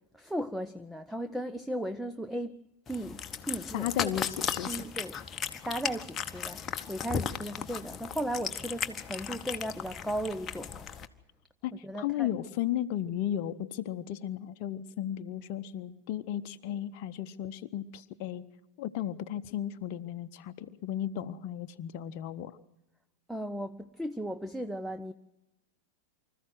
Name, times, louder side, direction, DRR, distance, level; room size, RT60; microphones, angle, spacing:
voice 1, 0.1-2.6 2.9-4.3 4.7-10.9 11.8-12.4 23.3-25.1, right 1 dB, ahead, 0.6 m, -36 dB
Cat, 2.9-11.1, left 7 dB, 20° left, 1.0 m, -36 dB
voice 2, 3.7-4.8 11.6-18.4 18.8-22.6, left 11 dB, 45° left, 0.8 m, -35 dB
25.0 x 14.5 x 7.7 m
figure-of-eight pair, 95°, 0 cm